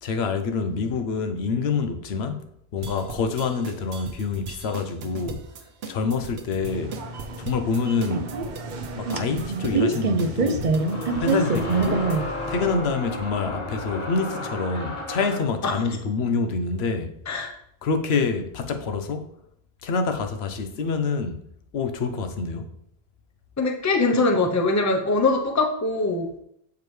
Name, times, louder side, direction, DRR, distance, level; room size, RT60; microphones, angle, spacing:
voice 1, 0.0-5.4 5.9-7.0 7.4-8.4 9.0-10.7 11.2-12.2 12.5-17.2 17.8-19.3 19.8-21.5 21.7-22.7, left 4 dB, 85° left, 0.9 m, -27 dB
sound 1, 2.8-12.2, right 5 dB, 80° right, 0.9 m, -38 dB
sound 2, 6.7-12.7, right 3 dB, 55° right, 0.7 m, -26 dB
sound 3, 8.8-8.9 10.7-15.6, left 2 dB, 70° left, 1.5 m, -33 dB
voice 2, 23.6-26.3, left 3 dB, 20° left, 0.6 m, -22 dB
7.0 x 4.8 x 3.1 m
omnidirectional pair, 1.0 m